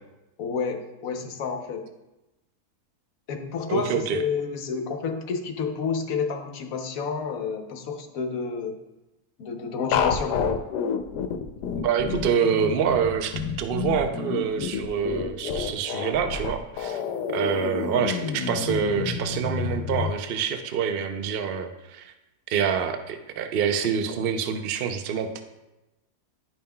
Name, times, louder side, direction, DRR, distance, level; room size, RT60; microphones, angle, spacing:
voice 1, 0.4-1.9 3.3-8.7 9.4-10.6, left 5 dB, 65° left, 5 dB, 1.1 m, -30 dB
voice 2, 3.7-4.2 11.8-17.0 17.3-22.1 22.5-25.4, right 7 dB, 80° right, 7 dB, 0.5 m, -26 dB
sound 1, 9.9-20.1, left 7 dB, 85° left, 1.2 m, -29 dB
11.0 x 5.4 x 2.2 m, 0.98 s
omnidirectional pair, 1.7 m